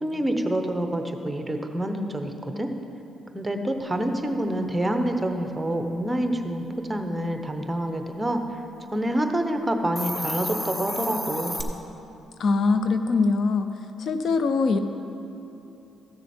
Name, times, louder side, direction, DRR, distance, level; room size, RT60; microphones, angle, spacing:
voice 1, 0.0-2.7 3.3-8.6 8.9-11.6, right 1 dB, 10° right, 5 dB, 0.9 m, -27 dB
Hiss, 9.8-11.6, left 1 dB, 15° left, 1.0 m, -31 dB
voice 2, 12.4-13.7 14.0-14.8, left 4 dB, 60° left, 9 dB, 0.5 m, -22 dB
14.0 x 6.8 x 4.4 m, 2.8 s
cardioid pair, 90°, 0 cm